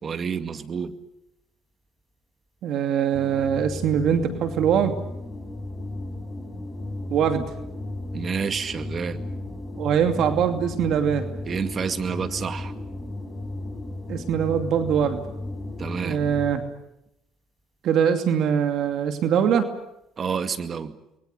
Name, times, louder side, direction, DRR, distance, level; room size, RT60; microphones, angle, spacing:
voice 1, 0.0-0.9 8.1-9.2 11.5-12.7 15.8-16.2 20.2-21.0, right 6 dB, 45° right, 9 dB, 2.2 m, -29 dB
voice 2, 2.6-4.9 7.1-7.4 9.8-11.3 14.1-15.2 16.0-16.6 17.8-19.7, right 8 dB, 65° right, 6 dB, 2.6 m, -22 dB
sound 1, 3.1-16.8, left 2 dB, 10° left, 6.9 m, -35 dB
29.0 x 22.5 x 6.8 m, 0.84 s
supercardioid pair, 70°, 0 cm